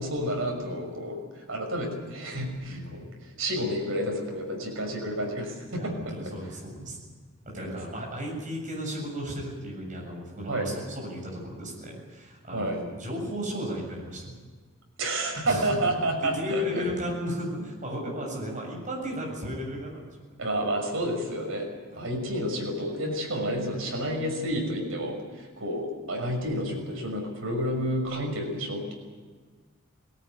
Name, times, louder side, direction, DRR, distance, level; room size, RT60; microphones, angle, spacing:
voice 1, 0.0-6.1 6.8-6.9 7.6-8.0 10.5-10.7 12.5-12.8 15.0-16.9 20.4-21.7 22.0-28.9, right 1 dB, 70° right, 2 dB, 6.2 m, -30 dB
voice 2, 2.7-3.0 5.8-7.0 7.5-14.3 15.4-15.7 16.3-20.0 21.9-22.0, equal, 35° right, -1 dB, 7.5 m, -35 dB
20.0 x 18.5 x 9.5 m, 1.5 s
head